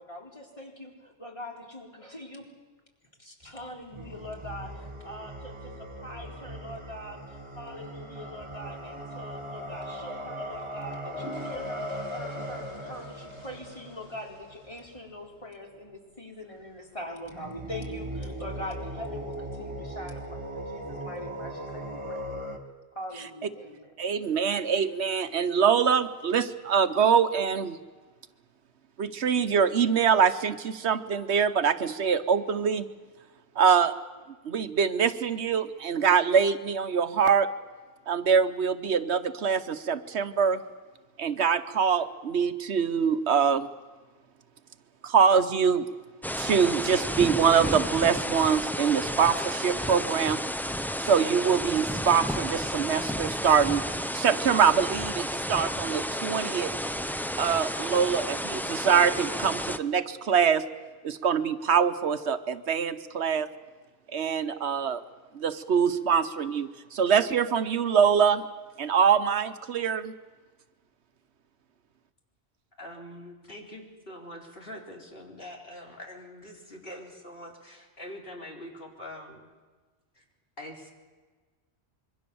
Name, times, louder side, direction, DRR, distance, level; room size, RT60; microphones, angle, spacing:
voice 1, 0.0-2.5 3.2-22.3 22.9-23.9, left 1 dB, 30° left, 0 dB, 4.1 m, -43 dB
sound 1, 3.4-15.4 17.3-22.6, equal, 25° right, 2.2 m, -39 dB
sound 2, 11.1-15.4, equal, 90° left, 4.7 m, -50 dB
voice 2, 24.0-27.8 29.0-32.8 33.6-33.9 34.4-37.5 38.1-40.6 41.2-43.7 45.0-45.8 46.4-50.4 51.0-53.8 54.1-56.7 57.4-60.6 61.0-63.5 64.1-65.0 65.3-68.4 68.8-70.1, right 7 dB, 80° right, 12 dB, 1.2 m, -24 dB
sound 3, 46.2-59.8, equal, ahead, 0.5 m, -32 dB
voice 3, 72.8-79.5 80.1-80.2 80.6-80.9, left 1 dB, 55° left, 0 dB, 4.3 m, -44 dB
26.0 x 23.0 x 7.0 m, 1.3 s
omnidirectional pair, 1.1 m